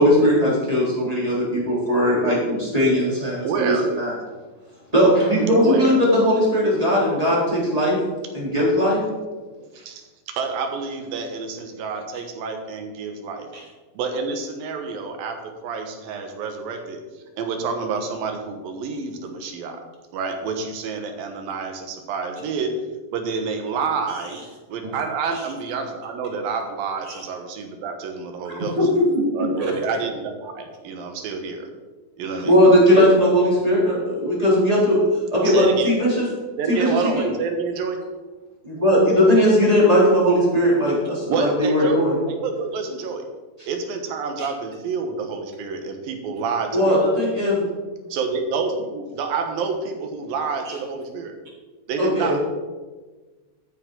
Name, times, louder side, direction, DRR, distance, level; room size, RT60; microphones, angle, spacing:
voice 1, 0.0-4.1 4.9-8.0 8.3-9.0 32.4-35.0 35.3-36.3 36.7-37.0 38.7-42.2 46.7-47.6 52.0-52.3, equal, 10° right, -6 dB, 3.4 m, -18 dB
voice 2, 3.4-3.8 5.6-5.9 6.8-6.9 9.3-13.5 13.9-17.0 17.4-19.8 20.1-22.7 23.1-24.4 24.7-28.8 29.3-31.7 32.2-32.6 33.0-33.2 35.4-35.9 36.6-38.0 41.3-43.2 43.7-47.0 48.1-51.3 51.9-52.4, right 4 dB, 75° right, 5 dB, 3.0 m, -28 dB
voice 3, 28.8-29.7 44.4-44.5 50.7-50.8, left 1 dB, 40° right, -2 dB, 3.1 m, -22 dB
12.5 x 9.5 x 3.9 m, 1.3 s
omnidirectional pair, 4.3 m